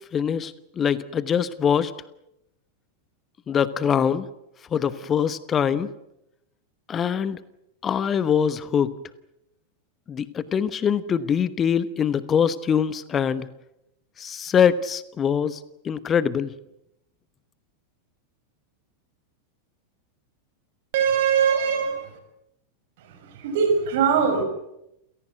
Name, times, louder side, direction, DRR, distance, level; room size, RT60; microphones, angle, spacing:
voice 1, 0.1-1.9 3.5-4.3 4.7-5.9 6.9-7.4 7.8-8.9 10.1-13.5 14.2-16.5, left 7 dB, 25° left, 16 dB, 1.0 m, -23 dB
voice 2, 20.9-22.1 23.3-24.4, right 7 dB, 50° right, 7 dB, 6.4 m, -21 dB
29.5 x 17.0 x 9.3 m, 0.84 s
figure-of-eight pair, 90°, 0 cm